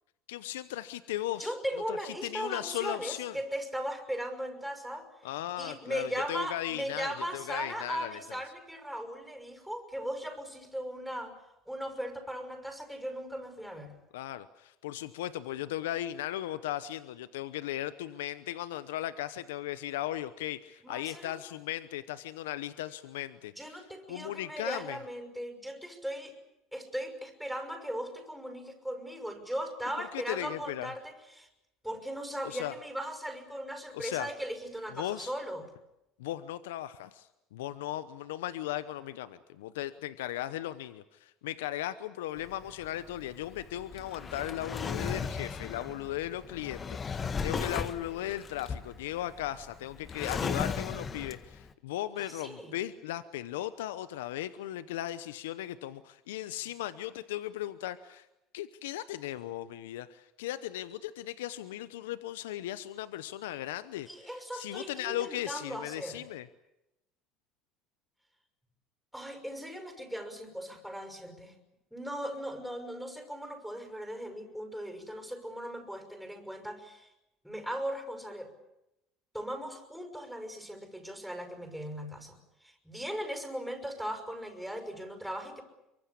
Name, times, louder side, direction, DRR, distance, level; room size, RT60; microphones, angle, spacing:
voice 1, 0.3-1.5 1.9-3.4 5.2-8.4 14.1-23.8 24.1-25.0 30.1-30.9 32.4-32.7 33.9-34.3 34.9-35.3 36.2-58.3 58.5-66.5, left 13 dB, 90° left, 14 dB, 0.8 m, -37 dB
voice 2, 1.4-5.1 5.6-11.4 11.7-14.0 20.8-21.4 23.5-26.4 26.7-31.5 31.8-35.7 52.2-52.8 64.1-66.3 69.1-71.5 71.9-77.1 77.4-78.5 79.3-85.6, equal, ahead, 5 dB, 6.0 m, -38 dB
Drawer open or close, 42.4-51.7, left 5 dB, 30° left, 1.5 m, -36 dB
24.0 x 24.0 x 8.5 m, 0.90 s
supercardioid pair, 85°, 0 cm